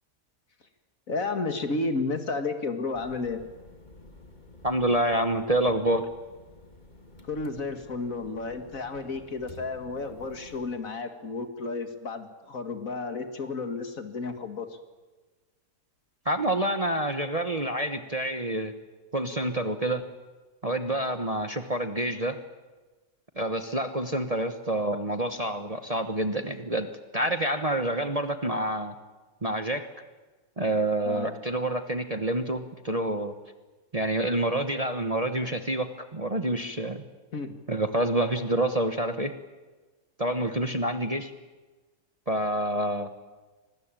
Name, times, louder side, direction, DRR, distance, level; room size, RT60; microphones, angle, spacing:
voice 1, 1.1-3.4 7.2-14.8 31.0-31.3 37.3-37.6, left 3 dB, 60° left, 7 dB, 2.4 m, -32 dB
sound 1, 2.9-10.7, left 2 dB, 30° left, 2.7 m, -51 dB
voice 2, 4.6-6.1 16.2-18.7 19.1-20.0 20.6-22.4 23.4-26.9 27.1-28.9 29.4-29.9 30.6-33.3 33.9-37.0 37.7-39.3 40.2-41.3 42.3-43.1, right 1 dB, 25° right, 8 dB, 1.1 m, -27 dB
25.0 x 20.0 x 9.0 m, 1.3 s
omnidirectional pair, 1.7 m